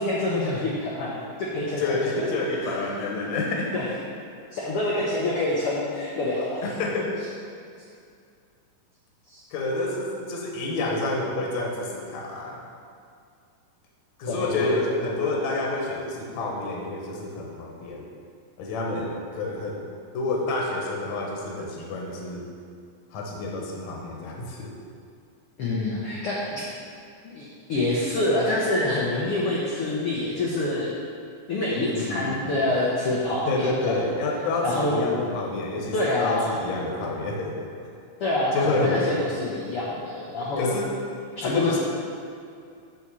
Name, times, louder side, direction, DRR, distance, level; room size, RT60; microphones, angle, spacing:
voice 1, 0.0-2.3 2.8-2.9 3.7-3.9 4.5-6.7 9.3-9.4 14.3-14.7 25.6-26.6 27.2-30.9 31.5-34.0 34.6-35.0 35.9-36.6 38.2-40.7 41.4-41.8, left 2 dB, 80° left, -5 dB, 1.2 m, -26 dB
voice 2, 1.8-3.8 5.0-5.1 6.6-7.1 9.5-12.6 14.2-18.1 18.6-19.8 20.1-22.5 23.1-24.7 31.7-32.3 33.5-37.6 38.5-39.2 40.6-40.9 41.4-41.8, left 2 dB, 65° left, -1 dB, 2.2 m, -28 dB
7.9 x 4.6 x 7.0 m, 2.4 s
omnidirectional pair, 4.0 m